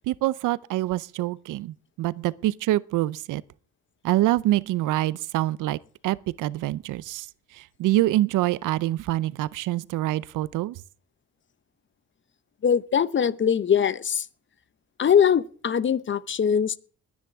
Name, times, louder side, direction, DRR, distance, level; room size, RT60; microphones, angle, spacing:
voice 1, 0.1-3.4 4.0-7.3 7.5-10.8, right 15 dB, 85° right, 0.7 m, -25 dB
voice 2, 12.6-14.3 15.0-16.8, left 8 dB, 40° left, 0.8 m, -22 dB
21.5 x 9.7 x 3.6 m
cardioid pair, 90°, 30 cm